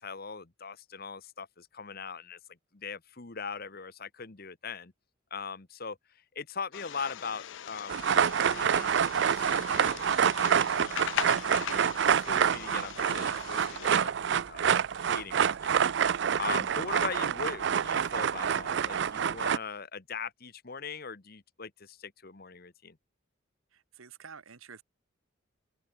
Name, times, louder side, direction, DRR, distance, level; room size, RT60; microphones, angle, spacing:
voice 1, 0.0-4.9 5.3-14.6 15.0-15.7 16.0-23.0, left 5 dB, 45° left, 1.2 m, -41 dB
sound 1, 6.7-14.0, left 9 dB, 65° left, 0.4 m, -40 dB
sound 2, 7.9-19.6, right 7 dB, 60° right, 0.4 m, -27 dB
voice 2, 23.7-24.8, right 6 dB, 90° right, 1.3 m, -49 dB
open air
head